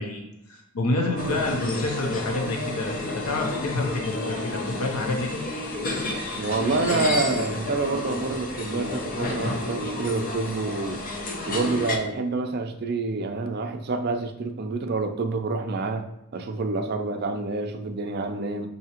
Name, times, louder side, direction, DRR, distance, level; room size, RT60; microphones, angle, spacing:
voice 1, 0.0-5.4, left 2 dB, 80° left, 1 dB, 0.6 m, -28 dB
voice 2, 1.0-1.4 6.4-11.0 11.5-16.1 16.3-18.7, right 3 dB, 45° right, 6 dB, 0.4 m, -27 dB
sound 1, 1.2-12.0, left 2 dB, 40° left, 0.5 m, -31 dB
5.6 x 2.7 x 2.9 m, 0.86 s
head